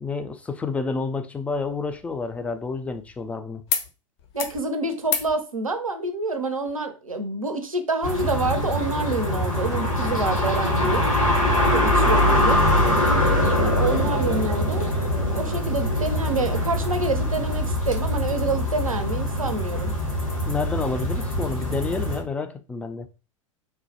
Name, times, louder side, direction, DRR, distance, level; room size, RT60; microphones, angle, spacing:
voice 1, 0.0-3.6 12.0-12.2 20.5-23.1, left 4 dB, 10° left, 0.3 m, -29 dB
sound 1, 1.5-3.3 3.7-3.9 4.2-4.6 5.0-5.3 6.7-6.8, left 7 dB, 55° left, 0.6 m, -32 dB
voice 2, 4.3-11.0 11.7-12.6 13.6-14.9 15.3-19.9, right 3 dB, 90° right, 0.5 m, -27 dB
sound 2, 8.0-22.2, left 1 dB, 85° left, 1.0 m, -23 dB
3.1 x 2.1 x 2.7 m
figure-of-eight pair, 90°, 17 cm